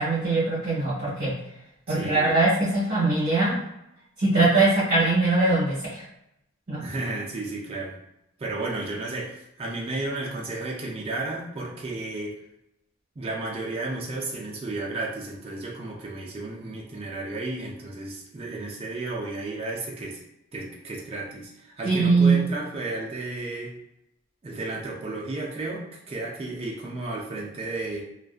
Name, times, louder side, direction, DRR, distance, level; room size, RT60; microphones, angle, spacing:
voice 1, 0.0-1.3 1.9-3.6 4.2-6.0 6.7-6.8 21.8-22.4, right 3 dB, 45° right, -10 dB, 0.9 m, -21 dB
voice 2, 1.9-2.4 6.8-8.0 8.4-12.4 13.2-20.2 20.5-23.7 24.4-28.0, right 2 dB, 30° right, -3 dB, 0.4 m, -33 dB
2.5 x 2.2 x 2.4 m, 0.84 s
head